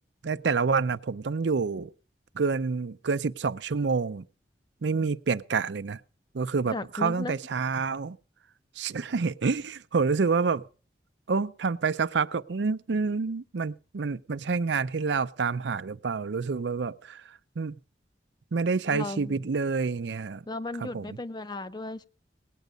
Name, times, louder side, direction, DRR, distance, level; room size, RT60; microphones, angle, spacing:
voice 1, 0.2-1.9 2.3-4.3 4.8-6.0 6.3-8.2 8.8-10.6 11.3-17.8 18.5-20.4 20.8-21.2, right 4 dB, 85° right, 0.5 m, -28 dB
voice 2, 6.7-7.4 18.9-19.4 20.5-22.0, left 2 dB, 25° left, 0.6 m, -35 dB
18.5 x 9.2 x 5.2 m
head